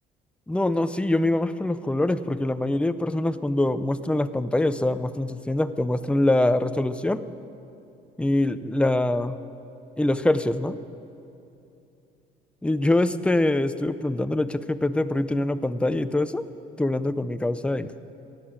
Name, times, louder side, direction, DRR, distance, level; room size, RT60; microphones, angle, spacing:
voice 1, 0.5-7.3 8.2-9.4 10.0-10.8 12.6-16.5 16.8-17.9, left 1 dB, 5° left, 12 dB, 0.5 m, -24 dB
16.0 x 10.5 x 7.3 m, 2.7 s
cardioid pair, 110°, 17 cm